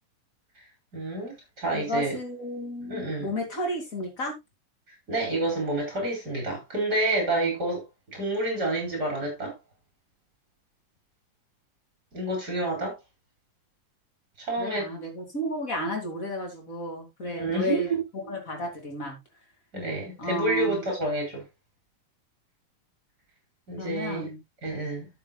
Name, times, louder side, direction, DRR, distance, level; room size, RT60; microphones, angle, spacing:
voice 1, 0.9-2.2 2.8-3.3 5.1-7.8 8.1-9.5 12.1-13.0 14.4-14.9 17.2-18.0 19.7-21.4 23.7-24.3 24.6-25.1, right 2 dB, 25° right, 4.8 m, -29 dB
voice 2, 1.7-4.3 14.6-17.9 18.3-19.2 20.2-20.8 23.8-24.4, equal, 25° left, 2.5 m, -32 dB
12.0 x 8.0 x 2.3 m
omnidirectional pair, 4.0 m